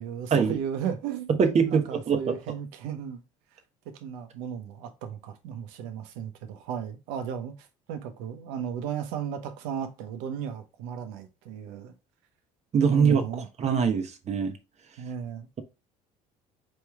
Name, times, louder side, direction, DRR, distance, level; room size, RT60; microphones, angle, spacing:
voice 1, 0.0-1.3 1.7-3.2 4.0-11.9 12.9-13.5 15.0-15.5, right 8 dB, 80° right, 0.9 m, -35 dB
voice 2, 1.4-2.4 12.7-13.2 13.6-14.6, right 6 dB, 40° right, 1.0 m, -23 dB
4.4 x 3.2 x 3.5 m
supercardioid pair, 80°, 17 cm